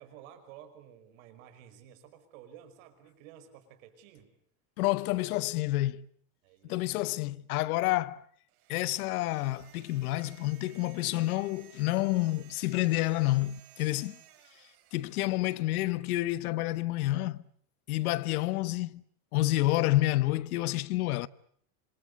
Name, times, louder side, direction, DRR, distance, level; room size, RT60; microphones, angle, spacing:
voice 1, 0.0-4.3 6.4-6.8, right 10 dB, 65° right, 5.5 m, -52 dB
voice 2, 4.8-6.0 6.7-8.2 8.7-14.2 14.9-17.4 17.9-19.0 19.3-21.3, left 17 dB, 80° left, 1.1 m, -29 dB
sound 1, 8.5-15.9, right 12 dB, 80° right, 5.6 m, -58 dB
26.5 x 23.5 x 8.1 m
supercardioid pair, 165°, 43 cm